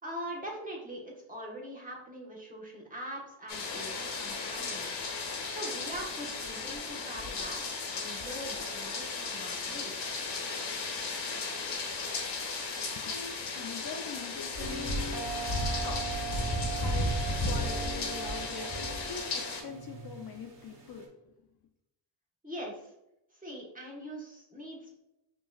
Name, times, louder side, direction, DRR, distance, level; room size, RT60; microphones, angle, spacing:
voice 1, 0.0-5.1 5.5-10.1 22.4-22.9 23.3-25.0, right 1 dB, 15° right, -2 dB, 1.3 m, -42 dB
sound 1, 3.5-19.6, left 3 dB, 70° left, 1.2 m, -35 dB
voice 2, 12.9-15.2 15.8-16.3 16.7-17.1 17.4-21.1, left 5 dB, 55° left, 4 dB, 0.6 m, -43 dB
sound 2, 14.6-21.1, right 5 dB, 50° right, 1.3 m, -40 dB
5.4 x 3.1 x 2.4 m, 0.87 s
cardioid pair, 80°, 46 cm